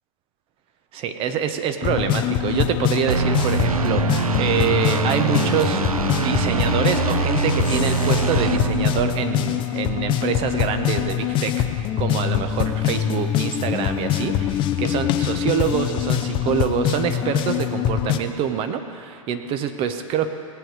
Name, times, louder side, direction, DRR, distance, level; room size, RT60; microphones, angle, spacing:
voice 1, 0.9-20.3, right 8 dB, 30° right, 8 dB, 1.0 m, -26 dB
sound 1, 1.8-18.2, left 11 dB, 30° left, 0.7 m, -23 dB
sound 2, 3.1-9.6, right 5 dB, 90° right, 0.5 m, -24 dB
18.0 x 9.0 x 4.8 m, 2.4 s
figure-of-eight pair, 110°, 18 cm